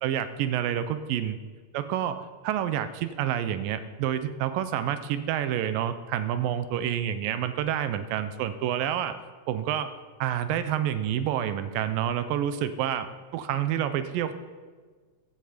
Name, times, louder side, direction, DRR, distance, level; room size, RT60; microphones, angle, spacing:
voice 1, 0.0-1.4 1.7-9.2 9.5-14.3, right 10 dB, 85° right, 11 dB, 2.4 m, -28 dB
15.5 x 13.5 x 5.0 m, 1.5 s
omnidirectional pair, 4.0 m